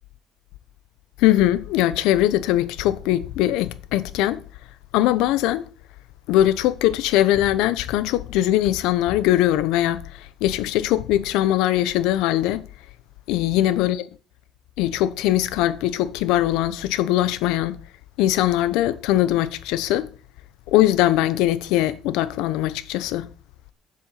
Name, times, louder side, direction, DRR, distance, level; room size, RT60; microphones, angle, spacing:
voice 1, 1.2-4.4 4.9-5.6 6.3-12.6 13.3-14.1 14.8-17.8 18.2-20.1 20.7-23.3, left 14 dB, 85° left, 0.9 m, -21 dB
7.7 x 7.0 x 7.9 m
cardioid pair, 160°, 0 cm